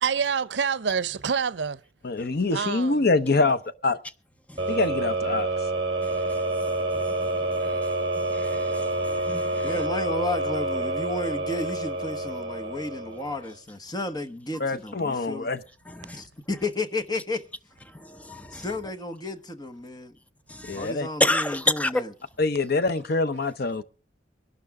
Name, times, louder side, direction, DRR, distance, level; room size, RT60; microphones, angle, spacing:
voice 1, 0.0-1.8 2.5-3.1, right 6 dB, 80° right, 0.6 m, -27 dB
voice 2, 2.0-4.0 4.7-5.5 14.6-15.6 20.7-21.1 22.4-23.8, left 3 dB, 60° left, 0.8 m, -25 dB
sound 1, 4.6-13.5, right 2 dB, 30° right, 3.8 m, -28 dB
voice 3, 8.3-9.7 16.0-16.2 18.1-18.6 20.5-20.8 21.2-21.9, left 1 dB, 10° left, 0.7 m, -29 dB
voice 4, 9.6-15.5 16.1-17.5 18.5-20.1 20.7-22.1, left 2 dB, 25° left, 1.1 m, -32 dB
22.5 x 12.0 x 3.6 m
head